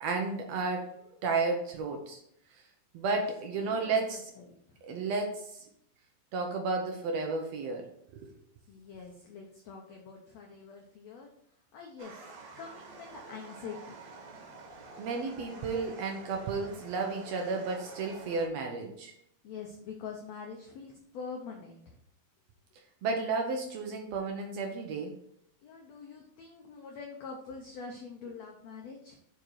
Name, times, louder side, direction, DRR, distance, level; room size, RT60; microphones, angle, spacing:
voice 1, 0.0-2.2 2.5-2.6 2.9-4.3 4.8-5.7 6.3-7.9 15.0-19.1 23.0-25.1, right 4 dB, 85° right, 2 dB, 1.4 m, -32 dB
voice 2, 3.5-4.6 8.7-11.3 11.7-12.3 12.6-13.9 19.4-22.0 25.6-29.2, left 5 dB, 80° left, 1 dB, 1.5 m, -45 dB
sound 1, 12.0-18.5, right 3 dB, 60° right, 2.3 m, -48 dB
7.6 x 5.3 x 4.6 m, 0.71 s
omnidirectional pair, 4.2 m